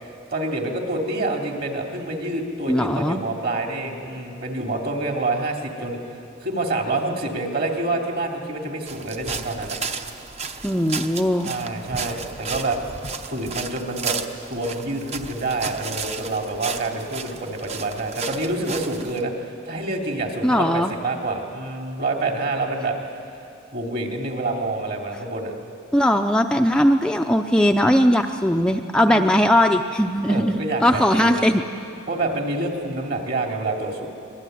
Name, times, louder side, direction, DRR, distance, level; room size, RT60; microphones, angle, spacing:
voice 1, 0.3-6.0 6.4-9.8 11.4-12.8 13.3-14.2 14.5-23.0 23.7-25.5 29.1-29.2 30.3-31.4 32.1-34.1, right 2 dB, 50° right, 2 dB, 3.0 m, -27 dB
voice 2, 2.7-3.2 10.6-11.5 20.4-20.9 25.9-31.6, equal, 5° left, 3 dB, 0.5 m, -19 dB
sound 1, 8.9-19.2, right 5 dB, 30° right, 0.9 m, -33 dB
25.0 x 20.0 x 9.3 m, 2.6 s
head